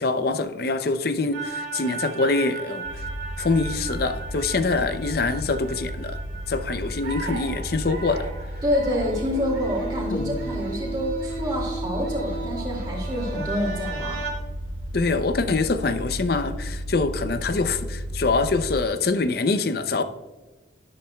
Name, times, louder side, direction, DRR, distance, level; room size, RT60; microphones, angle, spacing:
voice 1, 0.0-3.0 3.4-6.2 6.5-8.3 10.1-10.4 14.9-20.0, left 3 dB, 50° left, 10 dB, 0.5 m, -24 dB
sound 1, 1.3-14.3, right 4 dB, 60° right, 1.9 m, -35 dB
sound 2, 2.8-18.8, equal, 80° left, 1.1 m, -34 dB
voice 2, 8.6-14.2, left 1 dB, 20° right, -3 dB, 2.2 m, -27 dB
11.0 x 10.5 x 2.3 m, 1.2 s
head